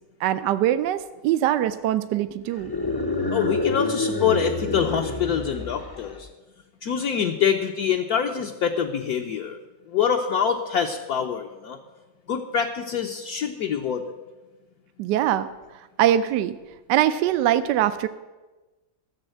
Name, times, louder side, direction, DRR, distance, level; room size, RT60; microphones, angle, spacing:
voice 1, 0.2-2.7 15.0-15.5 16.0-16.6 16.9-18.1, right 12 dB, 75° right, 11 dB, 1.1 m, -22 dB
sound 1, 2.6-6.2, left 2 dB, 25° left, 0.4 m, -28 dB
voice 2, 3.3-6.3 6.8-9.6 9.9-11.8 12.3-14.1, left 7 dB, 60° left, 2 dB, 1.1 m, -25 dB
13.5 x 7.1 x 7.8 m, 1.2 s
omnidirectional pair, 2.1 m